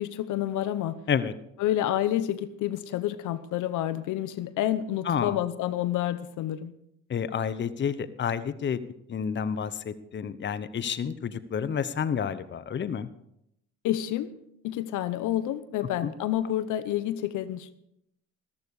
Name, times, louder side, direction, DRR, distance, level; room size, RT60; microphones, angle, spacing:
voice 1, 0.0-1.0 1.6-6.7 13.8-14.3 14.6-17.7, left 12 dB, 70° left, 15 dB, 1.0 m, -29 dB
voice 2, 5.1-5.4 7.1-8.8 9.1-13.1 16.0-16.1, left 7 dB, 35° left, 15 dB, 0.9 m, -29 dB
14.5 x 14.0 x 4.9 m, 0.77 s
supercardioid pair, 80°, 32 cm